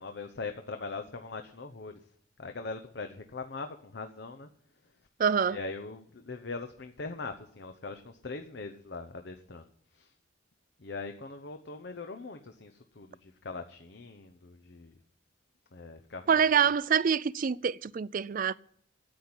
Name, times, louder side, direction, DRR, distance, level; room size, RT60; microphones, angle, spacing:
voice 1, 0.0-2.0 2.4-4.5 5.5-9.7 9.9-10.1 10.8-14.9 15.7-16.3, left 3 dB, 60° left, 0.8 m, -41 dB
voice 2, 5.2-5.6 16.3-18.5, right 7 dB, 45° right, 0.4 m, -26 dB
10.0 x 8.7 x 9.7 m
head